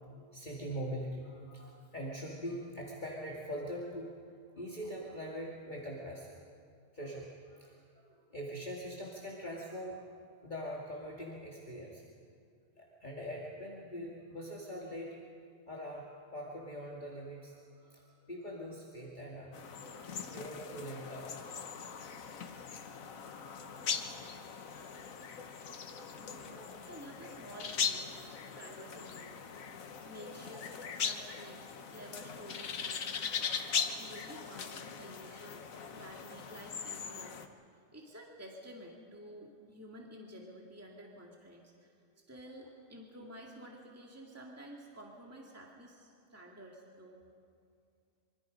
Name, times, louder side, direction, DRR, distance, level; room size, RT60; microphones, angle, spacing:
voice 1, 0.2-4.1 4.5-6.3 6.9-10.0 10.3-12.0 12.8-15.2 15.7-16.1 16.3-19.6 19.9-21.6 23.8-23.9 25.0-25.6 26.4-26.7, equal, 35° left, -4 dB, 2.4 m, -43 dB
sound 1, 19.5-37.5, left 6 dB, 85° left, 1.5 m, -40 dB
voice 2, 26.1-26.6 26.9-29.6 30.0-30.7 30.9-37.4 37.7-41.9 42.3-47.2, right 1 dB, 10° right, -1 dB, 2.2 m, -51 dB
25.5 x 24.5 x 5.3 m, 2.3 s
omnidirectional pair, 1.4 m